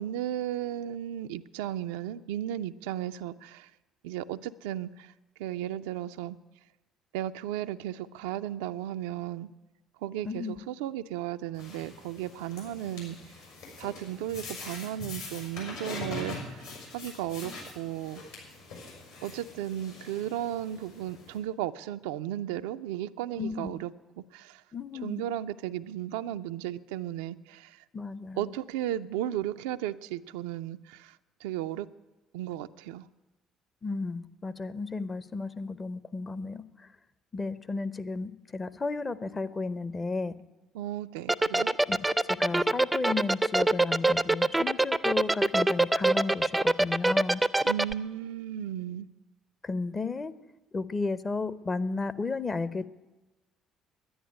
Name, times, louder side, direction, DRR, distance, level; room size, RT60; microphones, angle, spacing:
voice 1, 0.0-3.7 4.0-5.1 5.4-6.4 7.1-9.5 10.0-13.2 13.8-16.6 16.9-18.2 19.2-23.9 24.2-24.6 25.0-27.8 28.4-31.2 31.4-31.9 32.3-33.0 40.7-41.8 47.6-49.1, right 12 dB, 65° right, 10 dB, 0.4 m, -35 dB
voice 2, 10.2-10.6 23.4-23.8 24.7-25.2 27.9-28.6 33.8-36.9 37.3-40.4 41.9-47.4 49.6-50.3 50.7-52.9, left 3 dB, 25° left, 13 dB, 0.7 m, -33 dB
searching smth, 11.5-21.4, left 3 dB, 75° left, 5.4 m, -43 dB
sound 1, 41.3-47.9, right 2 dB, 10° right, 0.5 m, -23 dB
10.5 x 10.5 x 10.0 m, 1.1 s
figure-of-eight pair, 50°, 0 cm